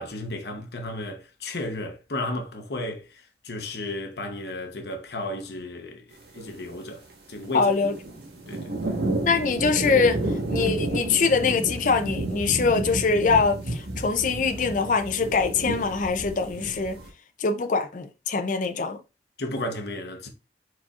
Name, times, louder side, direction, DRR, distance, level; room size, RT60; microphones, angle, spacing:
voice 1, 0.0-6.1 6.3-7.7 8.5-9.0 19.4-20.3, left 1 dB, 70° left, 0.9 m, -34 dB
sound 1, 6.3-6.7 7.5-17.1, right 2 dB, 70° right, 1.3 m, -31 dB
voice 2, 7.5-7.9 9.2-10.2 10.5-17.0 17.4-19.0, left 4 dB, 45° left, 0.5 m, -23 dB
4.7 x 4.1 x 2.4 m
head